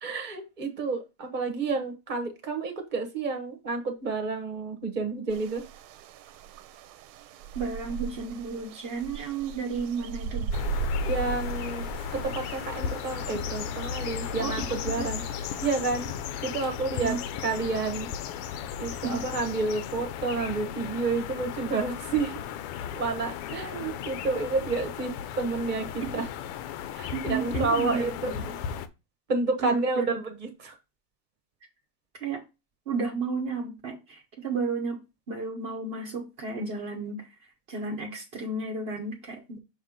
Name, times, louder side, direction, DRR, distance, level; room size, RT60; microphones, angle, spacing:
voice 1, 0.0-5.6 11.0-15.2 15.6-16.1 16.4-17.2 17.4-18.1 18.8-22.4 22.9-26.3 26.9-28.4 29.3-30.7, right 3 dB, 30° right, 0.9 m, -30 dB
sound 1, 5.3-15.9, right 6 dB, 75° right, 1.3 m, -38 dB
voice 2, 7.5-10.5 14.4-14.6 15.0-15.1 16.9-17.2 18.9-19.2 26.0-26.3 27.1-28.6 29.6-30.0 32.2-32.4 32.9-35.0 35.3-37.3 37.7-39.6, right 4 dB, 60° right, 0.6 m, -33 dB
sound 2, 10.5-28.9, left 8 dB, 90° left, 1.6 m, -35 dB
6.4 x 3.2 x 5.1 m
omnidirectional pair, 2.4 m